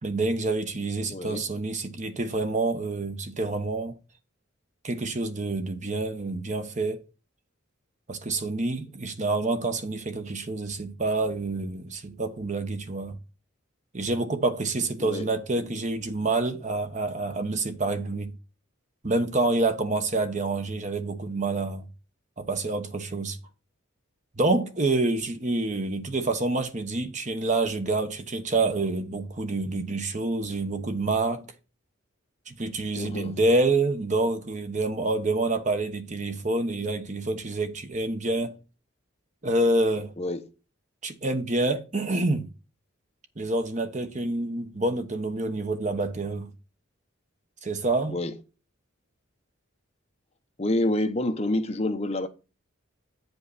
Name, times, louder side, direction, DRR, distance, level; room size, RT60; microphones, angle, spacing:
voice 1, 0.0-4.0 4.8-7.0 8.1-13.2 13.9-18.3 19.0-21.9 22.4-23.4 24.4-31.5 32.5-38.6 39.4-40.1 41.0-42.5 43.4-46.5 47.6-48.2, right 2 dB, 35° right, 1.0 m, -27 dB
voice 2, 1.1-1.4 15.0-15.3 32.9-33.3 40.2-40.5 48.1-48.3 50.6-52.3, left 1 dB, 30° left, 0.9 m, -28 dB
9.0 x 5.4 x 4.1 m
head